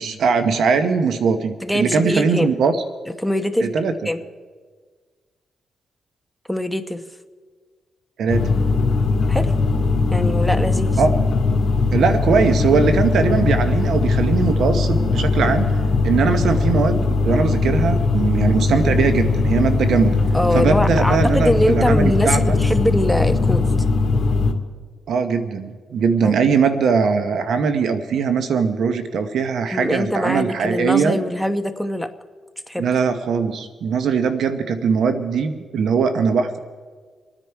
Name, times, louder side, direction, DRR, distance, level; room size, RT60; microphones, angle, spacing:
voice 1, 0.0-2.8 3.6-3.9 8.2-8.5 11.0-11.1 11.9-17.0 17.2-20.1 20.5-22.6 25.1-31.2 32.8-36.6, right 5 dB, 75° right, 9 dB, 0.9 m, -20 dB
voice 2, 1.6-2.5 3.2-3.7 4.0-4.2 6.5-7.0 9.3-9.6 10.1-11.0 20.3-23.7 26.2-26.4 29.7-32.1 32.7-32.8, left 1 dB, ahead, 8 dB, 1.0 m, -22 dB
sound 1, 8.3-24.5, left 3 dB, 55° left, 1.8 m, -19 dB
27.5 x 9.9 x 4.6 m, 1.5 s
cardioid pair, 90°, 0 cm